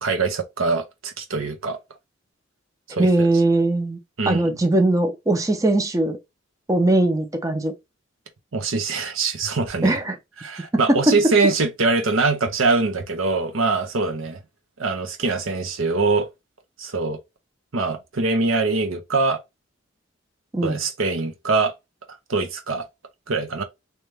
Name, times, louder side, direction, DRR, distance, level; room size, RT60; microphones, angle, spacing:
voice 1, 0.0-1.8 2.9-3.3 4.2-4.6 8.5-10.0 10.4-14.4 14.8-16.3 16.8-17.2 17.7-19.4 20.6-21.7 22.3-22.9 23.3-23.6, right 3 dB, 85° right, 0.8 m, -23 dB
voice 2, 3.0-4.0 4.3-6.2 6.7-7.7 9.8-10.2 10.9-11.2 20.5-20.8, right 2 dB, 15° right, 0.6 m, -20 dB
3.3 x 2.9 x 3.3 m
head